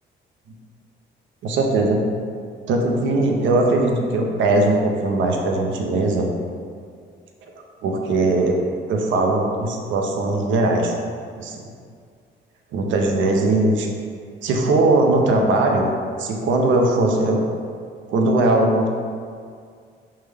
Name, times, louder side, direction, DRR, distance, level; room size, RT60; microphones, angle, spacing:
voice 1, 1.4-2.0 2.7-6.3 7.8-8.6 8.9-10.9 11.4-11.6 12.7-13.9 14.4-15.9 16.2-17.4 18.1-18.9, right 2 dB, 75° right, 2 dB, 0.5 m, -19 dB
3.3 x 2.1 x 3.3 m, 2.2 s
cardioid pair, 90°, 20 cm